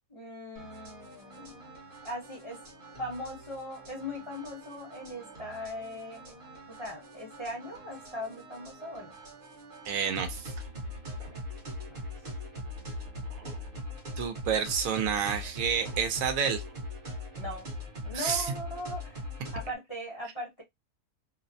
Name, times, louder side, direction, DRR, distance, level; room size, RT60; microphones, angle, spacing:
voice 1, 0.1-1.7 2.0-2.6 3.0-6.3 6.7-9.1 11.9-12.1 17.4-17.7 18.0-19.3 19.5-20.6, left 1 dB, 25° left, 0.7 m, -39 dB
sound 1, 0.6-19.8, left 1 dB, 45° right, 0.9 m, -42 dB
voice 2, 9.8-10.5 14.2-16.6 18.1-18.5, right 7 dB, 75° right, 0.9 m, -29 dB
2.7 x 2.0 x 2.6 m
omnidirectional pair, 1.5 m